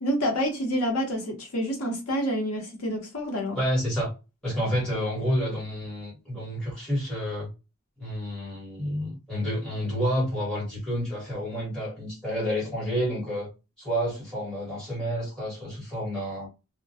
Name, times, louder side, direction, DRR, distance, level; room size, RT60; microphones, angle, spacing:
voice 1, 0.0-3.6, equal, 85° left, 0.8 m, -28 dB
voice 2, 3.5-4.1 4.4-7.5 8.0-13.5 13.8-16.5, equal, 5° left, 1.0 m, -29 dB
2.1 x 2.1 x 2.6 m
head